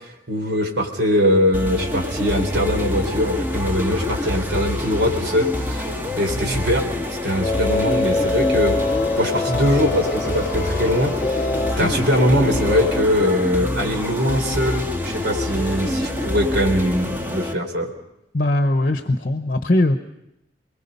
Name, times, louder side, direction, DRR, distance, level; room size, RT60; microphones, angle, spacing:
voice 1, 0.3-5.9 6.2-6.8 7.2-8.8 9.2-11.5 11.8-17.9, equal, 75° right, 3 dB, 4.3 m, -21 dB
sound 1, 1.5-17.5, left 1 dB, 10° right, 1.9 m, -26 dB
sound 2, 7.4-13.0, left 3 dB, 15° left, 2.5 m, -25 dB
voice 2, 18.3-20.0, left 1 dB, 50° left, 7 dB, 1.0 m, -20 dB
29.0 x 21.5 x 5.5 m, 0.85 s
head